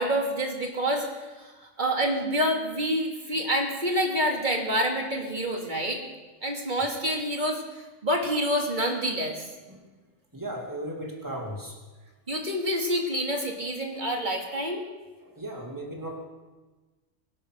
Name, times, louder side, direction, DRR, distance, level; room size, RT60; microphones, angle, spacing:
voice 1, 0.0-6.0 6.4-9.4 12.3-14.9, equal, 35° right, 1 dB, 2.4 m, -27 dB
voice 2, 10.3-11.8 15.2-16.3, right 1 dB, 15° right, -1 dB, 2.7 m, -36 dB
22.5 x 8.0 x 6.3 m, 1.2 s
omnidirectional pair, 1.3 m